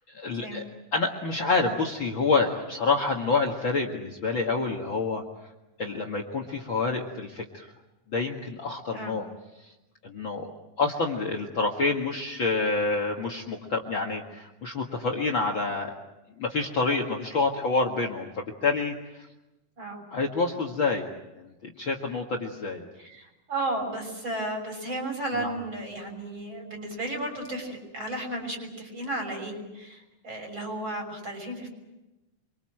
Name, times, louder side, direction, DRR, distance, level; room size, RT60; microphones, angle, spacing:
voice 1, 0.1-0.6 0.9-5.2 5.8-7.7 8.1-9.3 10.0-10.5 10.8-15.9 16.4-18.9 20.1-21.1 21.4-22.8 25.3-25.5, left 3 dB, 45° left, 4 dB, 2.3 m, -27 dB
voice 2, 23.0-31.7, right 1 dB, 35° right, 3 dB, 7.0 m, -34 dB
27.0 x 24.5 x 7.7 m, 0.99 s
omnidirectional pair, 3.7 m